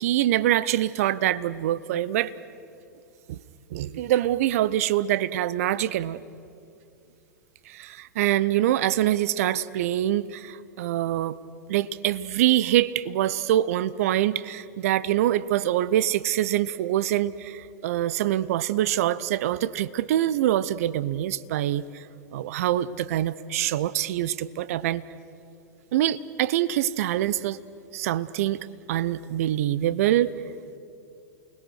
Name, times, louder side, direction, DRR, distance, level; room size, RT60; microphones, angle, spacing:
voice 1, 0.0-2.3 3.3-3.4 3.7-6.2 7.7-11.4 11.7-22.0 22.3-25.0 25.9-27.6 27.9-30.3, right 13 dB, 55° right, 17 dB, 0.7 m, -25 dB
29.0 x 20.5 x 6.5 m, 2.6 s
figure-of-eight pair, 95°, 9 cm